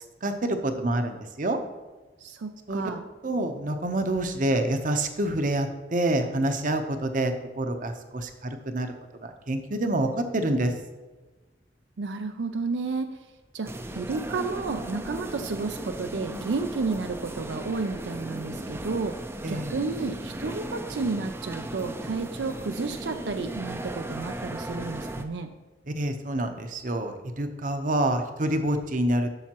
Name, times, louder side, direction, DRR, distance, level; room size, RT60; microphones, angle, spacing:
voice 1, 0.2-1.6 2.7-2.9 3.2-8.9 9.2-10.7 16.3-16.4 19.4-19.7 25.9-29.3, right 1 dB, 45° right, 6 dB, 0.8 m, -27 dB
voice 2, 2.2-3.0 12.0-13.2 13.5-25.5, right 4 dB, 80° right, 6 dB, 0.5 m, -32 dB
sound 1, 13.6-25.2, right 1 dB, 15° right, 0.5 m, -36 dB
12.0 x 7.0 x 2.9 m, 1.2 s
head